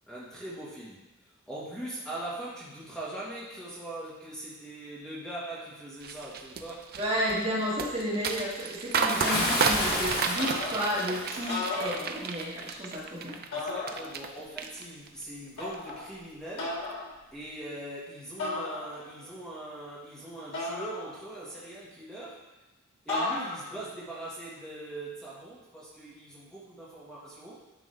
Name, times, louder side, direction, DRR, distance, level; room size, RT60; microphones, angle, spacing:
voice 1, 0.1-7.1 13.5-22.4 23.1-27.6, right 1 dB, 5° left, -8 dB, 1.7 m, -41 dB
sound 1, 6.0-14.3 14.6-15.2 15.6-15.9, right 5 dB, 50° right, 0.5 m, -32 dB
voice 2, 7.0-13.4, equal, 30° right, -6 dB, 2.1 m, -32 dB
Bathtub (filling or washing) / Splash splatter, 9.1-11.6, left 1 dB, 45° left, 1.2 m, -31 dB
sound 2, 10.4-11.0 11.4-12.5 13.5-14.4 15.6-16.1 16.6-17.1 18.4-19.2 20.5-21.5 23.1-23.8, left 2 dB, 80° left, 2.7 m, -35 dB
11.0 x 5.1 x 3.4 m, 1.0 s
head